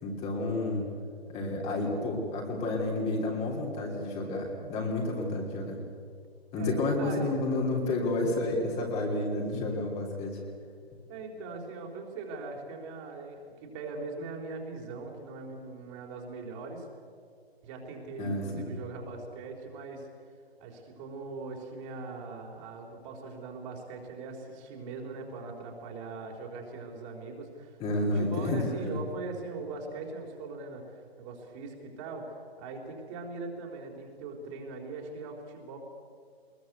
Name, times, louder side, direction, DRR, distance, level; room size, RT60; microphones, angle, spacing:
voice 1, 0.0-0.8 1.3-5.8 6.5-10.4 18.2-18.7 27.8-28.9, left 2 dB, 20° left, 0 dB, 3.1 m, -30 dB
voice 2, 6.5-7.4 11.1-16.9 17.6-20.1 20.6-35.8, right 3 dB, 30° right, 1 dB, 3.9 m, -41 dB
22.0 x 21.5 x 8.2 m, 2.2 s
figure-of-eight pair, 130°, 31 cm